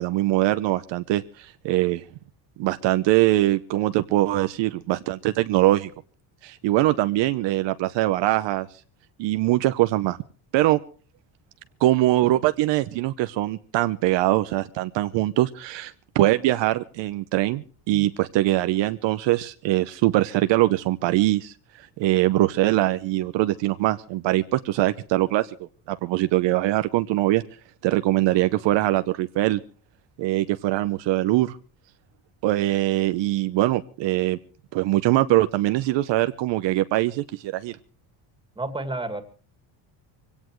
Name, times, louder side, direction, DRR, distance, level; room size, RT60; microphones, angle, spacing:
voice 1, 0.0-2.0 2.6-5.9 6.4-8.7 9.2-10.2 10.5-10.8 11.8-21.5 22.0-25.5 25.9-27.4 27.8-29.6 30.2-31.6 32.4-34.4 34.7-37.8, right 16 dB, 70° right, 11 dB, 0.9 m, -22 dB
voice 2, 38.6-39.2, right 2 dB, 10° right, 9 dB, 2.3 m, -30 dB
23.0 x 17.5 x 3.1 m, 0.38 s
cardioid pair, 125°, 46 cm